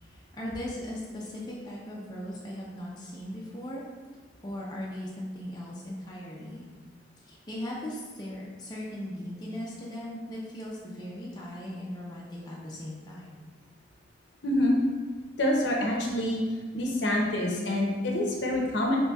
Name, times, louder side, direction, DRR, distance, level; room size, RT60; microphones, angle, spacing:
voice 1, 0.0-3.9 4.4-6.7 7.2-13.5, left 1 dB, 20° left, -5 dB, 0.5 m, -38 dB
voice 2, 14.4-14.8 15.4-16.4 16.7-19.0, left 1 dB, 65° left, -1 dB, 0.6 m, -26 dB
4.1 x 3.1 x 2.3 m, 1.4 s
head